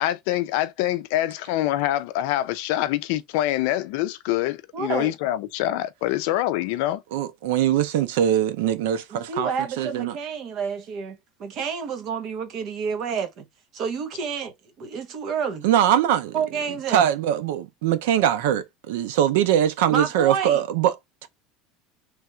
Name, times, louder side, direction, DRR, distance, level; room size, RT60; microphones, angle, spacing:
voice 1, 0.0-7.0, left 14 dB, 60° left, 0.5 m, -25 dB
voice 2, 4.7-5.1 9.1-13.4 13.7-15.7 16.3-17.1 19.9-20.6, right 6 dB, 35° right, 0.9 m, -29 dB
voice 3, 7.1-10.2 15.6-16.4 16.9-21.0 21.2-21.3, right 10 dB, 85° right, 0.6 m, -22 dB
3.4 x 2.5 x 4.3 m
cardioid pair, 175°, 0 cm